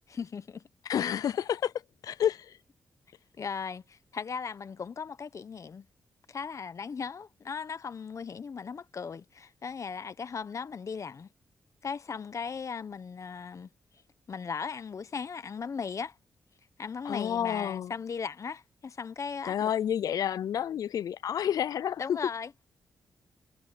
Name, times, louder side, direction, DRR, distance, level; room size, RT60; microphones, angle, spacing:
voice 1, 0.1-0.6 3.4-5.9 6.3-11.3 11.8-13.7 14.3-16.2 16.8-19.7 22.0-22.5, left 6 dB, 55° left, 1.2 m, -37 dB
voice 2, 0.8-2.6 17.0-17.9 19.4-22.2, left 9 dB, 75° left, 0.5 m, -30 dB
cardioid pair, 55°, 6 cm